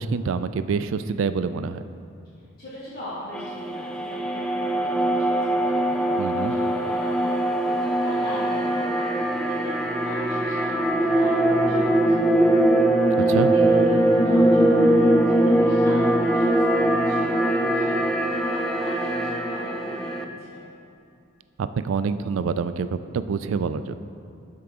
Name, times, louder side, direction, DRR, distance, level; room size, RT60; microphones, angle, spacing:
voice 1, 0.0-1.8 6.2-6.5 13.3-13.5 21.6-23.9, right 5 dB, 70° right, 12 dB, 0.3 m, -26 dB
voice 2, 2.6-9.0 9.4-12.5 13.5-20.6, left 1 dB, 50° left, -11 dB, 1.9 m, -39 dB
sound 1, 3.3-20.2, right 1 dB, 5° left, 0.4 m, -21 dB
12.5 x 4.7 x 3.7 m, 2.6 s
head